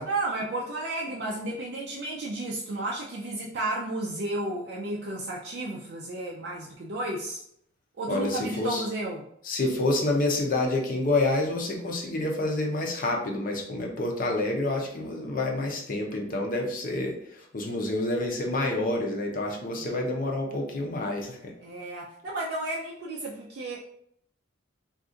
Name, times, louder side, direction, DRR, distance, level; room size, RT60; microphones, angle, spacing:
voice 1, 0.0-7.4 8.0-9.3 19.8-19.9 21.6-23.8, right 2 dB, 55° right, -3 dB, 0.4 m, -32 dB
voice 2, 8.1-8.9 9.4-21.5, left 2 dB, 40° left, 0 dB, 0.6 m, -28 dB
2.5 x 2.4 x 3.7 m, 0.70 s
head